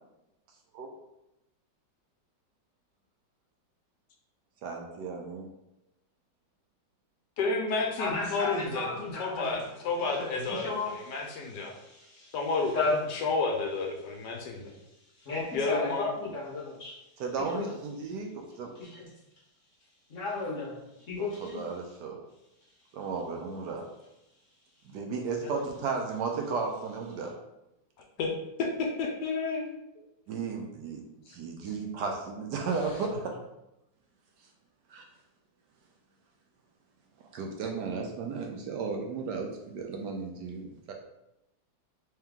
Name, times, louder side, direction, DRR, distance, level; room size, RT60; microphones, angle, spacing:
voice 1, 4.6-5.5 17.2-18.7 21.2-22.2 22.9-23.8 24.9-27.3 30.3-31.0 31.3-33.4 34.9-35.0 37.3-40.9, right 4 dB, 75° right, 2 dB, 1.1 m, -34 dB
voice 2, 7.4-8.9 9.2-11.7 12.3-12.8 13.1-14.7 15.5-16.1 28.2-28.3 28.6-29.7 31.3-31.4 31.6-31.7, left 3 dB, 75° left, 2 dB, 1.1 m, -31 dB
voice 3, 8.0-9.6 10.0-11.2 11.7-12.3 12.7-13.0 15.2-17.0 17.5-17.7 18.8-19.1 20.1-20.8 21.1-21.7 25.4-25.6, left 3 dB, 55° left, -4 dB, 1.0 m, -34 dB
3.3 x 3.1 x 3.5 m, 0.89 s
omnidirectional pair, 2.0 m